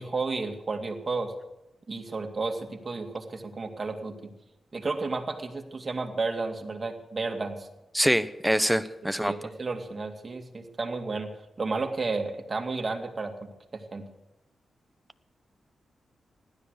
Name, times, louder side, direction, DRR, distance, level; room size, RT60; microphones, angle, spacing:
voice 1, 0.0-1.3 1.9-4.2 4.7-7.7 9.2-11.3 11.6-14.0, right 3 dB, 40° right, 4 dB, 2.4 m, -32 dB
voice 2, 7.9-9.3, equal, ahead, 12 dB, 1.0 m, -24 dB
16.0 x 12.5 x 6.6 m, 0.93 s
cardioid pair, 70°, 0 cm